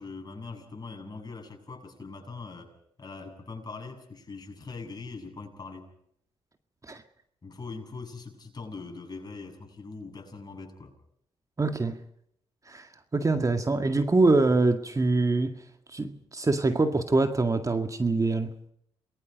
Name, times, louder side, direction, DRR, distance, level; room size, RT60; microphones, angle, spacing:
voice 1, 0.0-5.9 7.4-10.9, left 4 dB, 35° left, 7.7 m, -42 dB
voice 2, 11.6-12.0 12.7-15.6 15.9-18.5, right 3 dB, 30° right, 2.0 m, -24 dB
28.0 x 21.5 x 5.3 m
supercardioid pair, 60°, 11 cm